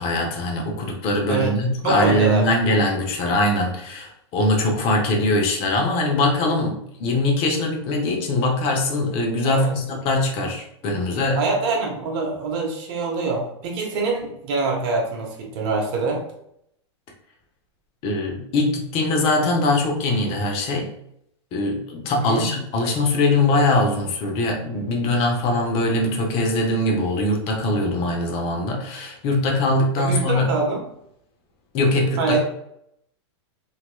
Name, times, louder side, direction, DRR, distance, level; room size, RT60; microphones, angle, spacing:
voice 1, 0.0-11.5 18.0-20.9 21.5-30.5 31.7-32.4, left 2 dB, 40° left, 1 dB, 0.7 m, -22 dB
voice 2, 1.8-2.5 9.4-9.7 11.3-16.2 22.2-22.5 30.0-30.8 32.2-32.4, right 3 dB, 55° right, -1 dB, 1.0 m, -24 dB
2.9 x 2.8 x 2.2 m, 0.75 s
hypercardioid pair, 120°, 15 cm